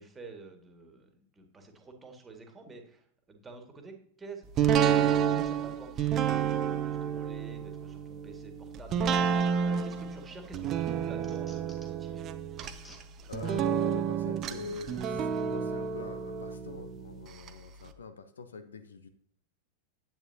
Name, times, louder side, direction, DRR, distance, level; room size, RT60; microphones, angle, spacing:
voice 1, 0.0-12.3, right 3 dB, 15° right, 4 dB, 2.0 m, -49 dB
sound 1, 4.6-17.5 17.9-18.0, right 8 dB, 30° right, 0.8 m, -30 dB
sound 2, 10.3-10.4 10.8-12.1 12.5-13.0 13.5-13.6 14.5-14.6 15.4-15.5, left 1 dB, 10° left, 2.3 m, -55 dB
voice 2, 13.3-19.1, left 4 dB, 70° left, 11 dB, 0.8 m, -43 dB
11.0 x 9.1 x 2.8 m, 0.64 s
figure-of-eight pair, 90°, 0 cm